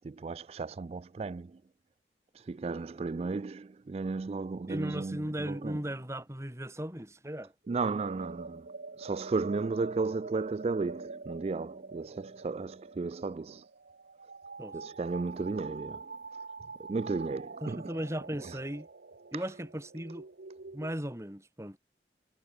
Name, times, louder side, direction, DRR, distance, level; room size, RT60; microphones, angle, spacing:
voice 1, 0.0-1.6 2.3-5.8 7.7-8.7 9.0-13.7 14.7-16.1 16.8-17.9 18.4-18.6 19.3-19.4, right 4 dB, 35° right, 0.3 m, -34 dB
voice 2, 4.7-7.5 14.6-14.8 17.6-18.9 19.3-20.2 20.7-21.8, equal, 15° right, 3.0 m, -37 dB
sound 1, 7.6-20.9, right 4 dB, 65° right, 0.9 m, -46 dB
head